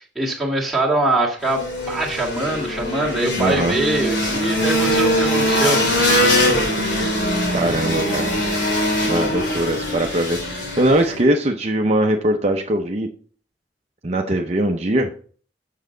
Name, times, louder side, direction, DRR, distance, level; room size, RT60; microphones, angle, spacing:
voice 1, 0.0-5.9, right 2 dB, ahead, -5 dB, 1.9 m, -23 dB
sound 1, 1.4-11.2, equal, 90° left, 2.3 m, -21 dB
voice 2, 3.4-3.7 7.5-8.3 9.1-13.1 14.0-15.1, right 1 dB, 35° right, 3 dB, 0.6 m, -21 dB
7.2 x 6.5 x 3.8 m, 0.44 s
head